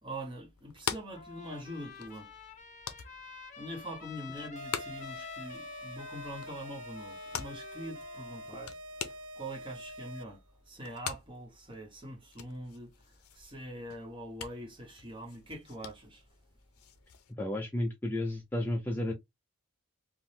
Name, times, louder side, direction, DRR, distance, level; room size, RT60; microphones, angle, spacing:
voice 1, 0.0-2.3 3.0-3.1 3.6-16.2, right 1 dB, 20° right, 0.8 m, -44 dB
sound 1, 0.6-17.3, left 8 dB, 85° left, 0.5 m, -45 dB
Trumpet, 1.1-8.7, left 5 dB, 35° left, 0.7 m, -49 dB
sound 2, 4.5-10.5, equal, 75° right, 0.4 m, -46 dB
voice 2, 17.4-19.1, left 1 dB, 10° left, 0.4 m, -32 dB
3.3 x 2.0 x 2.7 m
head